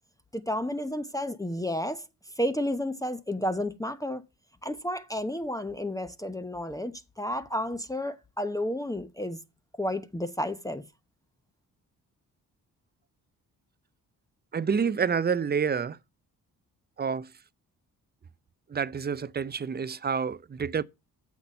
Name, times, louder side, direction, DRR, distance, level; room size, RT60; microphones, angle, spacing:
voice 1, 0.3-2.0 2.4-4.2 4.6-9.4 9.7-10.8, left 1 dB, 10° left, 0.8 m, -31 dB
voice 2, 14.5-16.0 17.0-17.3 18.7-20.8, right 6 dB, 25° right, 0.5 m, -28 dB
7.2 x 5.9 x 5.3 m
supercardioid pair, 60°, 37 cm